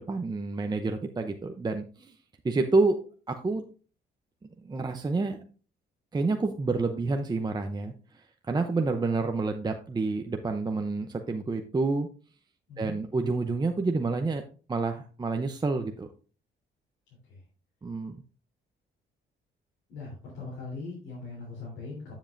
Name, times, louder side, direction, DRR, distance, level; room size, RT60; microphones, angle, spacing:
voice 1, 0.1-2.1 2.4-3.0 3.3-3.6 4.6-5.4 6.1-12.1 12.8-14.4 14.7-16.1 17.8-18.2, right 3 dB, 20° right, 5 dB, 0.7 m, -28 dB
voice 2, 19.9-22.1, left 3 dB, 80° left, -5 dB, 3.6 m, -40 dB
9.7 x 7.1 x 2.6 m, 0.39 s
cardioid pair, 90°, 20 cm